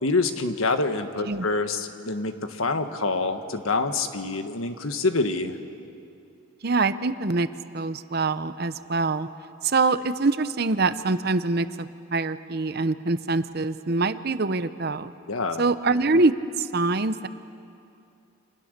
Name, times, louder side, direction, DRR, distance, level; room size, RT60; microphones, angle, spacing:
voice 1, 0.0-5.6 15.3-15.6, left 3 dB, 85° left, 7 dB, 1.5 m, -26 dB
voice 2, 6.6-7.5 7.7-9.3 9.6-15.1 15.6-17.3, right 3 dB, 50° right, 12 dB, 0.8 m, -24 dB
29.5 x 26.5 x 6.7 m, 2.6 s
head